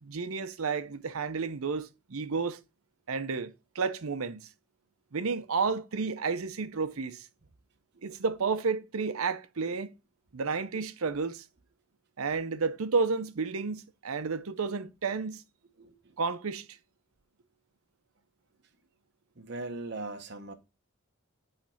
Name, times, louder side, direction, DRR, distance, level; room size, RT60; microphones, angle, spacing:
voice 1, 0.0-2.6 3.1-4.5 5.1-7.3 8.0-9.9 10.3-11.4 12.2-15.4 16.2-16.7, right 4 dB, 85° right, 0.7 m, -31 dB
voice 2, 15.8-16.2 19.4-20.5, right 2 dB, 50° right, 0.9 m, -40 dB
8.8 x 3.3 x 5.7 m
head